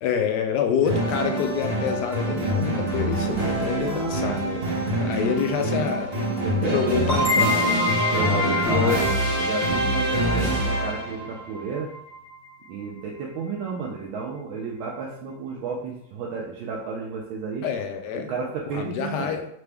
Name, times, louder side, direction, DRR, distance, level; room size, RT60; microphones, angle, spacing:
voice 1, 0.0-6.1 6.6-7.8 8.7-9.0 17.6-18.3 18.7-19.5, left 7 dB, 75° left, 5 dB, 1.0 m, -27 dB
sound 1, 0.8-11.2, right 1 dB, 40° right, 0.9 m, -25 dB
voice 2, 3.8-4.4 5.4-5.7 6.4-7.1 8.1-9.0 9.4-11.9 12.7-17.6 18.1-19.3, right 5 dB, 85° right, -2 dB, 1.4 m, -32 dB
sound 2, 7.1-12.5, left 2 dB, 20° left, 1.9 m, -28 dB
3.9 x 3.3 x 3.4 m, 0.72 s
omnidirectional pair, 2.1 m